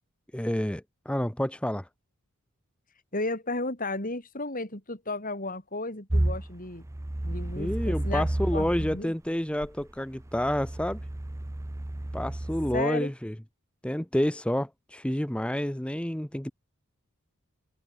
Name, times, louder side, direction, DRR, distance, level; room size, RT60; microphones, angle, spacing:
voice 1, 0.3-1.9 7.6-11.0 12.1-13.3 13.8-16.5, equal, 5° left, 0.9 m, -29 dB
voice 2, 3.1-6.8 7.2-9.1 12.7-13.1, left 2 dB, 40° left, 5.0 m, -34 dB
sound 1, 6.1-9.0 9.6-12.8, right 1 dB, 15° right, 0.5 m, -31 dB
head